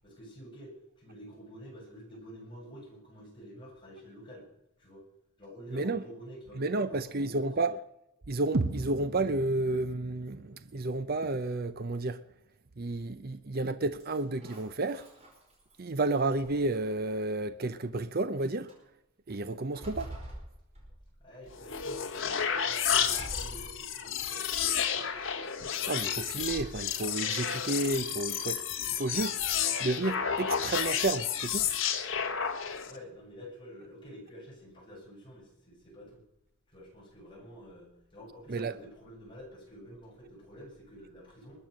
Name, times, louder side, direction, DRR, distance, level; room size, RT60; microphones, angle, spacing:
voice 1, 0.0-4.5 4.8-5.0 5.4-7.5 21.2-24.5 25.0-25.1 32.9-36.2 36.7-41.7, equal, 25° left, 7.5 m, -49 dB
voice 2, 5.7-6.0 6.6-7.8 8.3-12.2 12.8-15.1 15.8-18.7 19.3-20.1 25.8-28.6 28.9-29.4 29.8-31.7 38.5-38.7, right 2 dB, 50° right, 0.7 m, -31 dB
sound 1, 8.5-12.5, right 2 dB, 80° right, 1.1 m, -37 dB
sound 2, 14.0-15.9 16.4-17.1 17.9-18.0 18.4-18.8 19.3-21.2 21.7-22.2 23.1-24.2 24.7-25.3 26.2-27.1, right 1 dB, 30° right, 5.2 m, -46 dB
sound 3, 21.5-33.0, left 8 dB, 70° left, 1.5 m, -31 dB
21.5 x 9.3 x 6.6 m
head